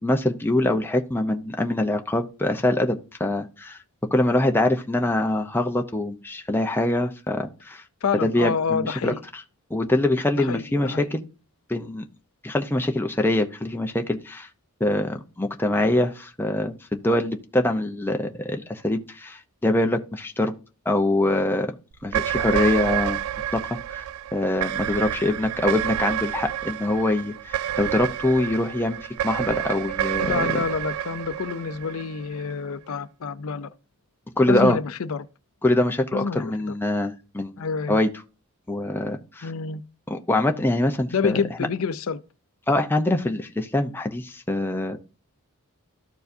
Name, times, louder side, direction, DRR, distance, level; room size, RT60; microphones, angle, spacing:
voice 1, 0.0-3.8 4.1-7.8 8.2-9.4 9.7-11.2 11.7-12.0 12.4-14.5 14.8-20.5 20.9-21.7 22.0-23.2 23.5-24.0 24.3-30.5 34.4-34.8 35.6-37.6 37.9-38.1 38.7-39.5 40.1-41.4 42.7-45.0, left 1 dB, 10° left, 0.7 m, -24 dB
voice 2, 8.0-9.2 10.4-11.1 30.2-33.7 34.5-35.3 36.1-36.7 37.6-38.0 39.4-39.8 41.1-42.2, left 5 dB, 70° left, 0.5 m, -28 dB
sound 1, 22.0-32.5, right 11 dB, 70° right, 0.3 m, -29 dB
13.5 x 4.6 x 2.7 m
head